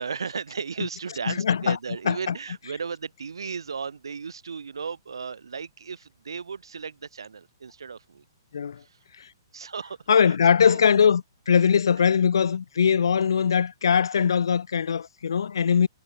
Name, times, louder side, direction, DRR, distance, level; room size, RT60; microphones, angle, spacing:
voice 1, 0.0-8.2 9.5-10.8 12.9-13.1, right 5 dB, 85° right, 1.1 m, -35 dB
voice 2, 1.3-1.8 2.1-2.3 8.5-8.7 10.1-15.9, left 7 dB, 80° left, 0.6 m, -21 dB
hypercardioid pair, 145°, 2 cm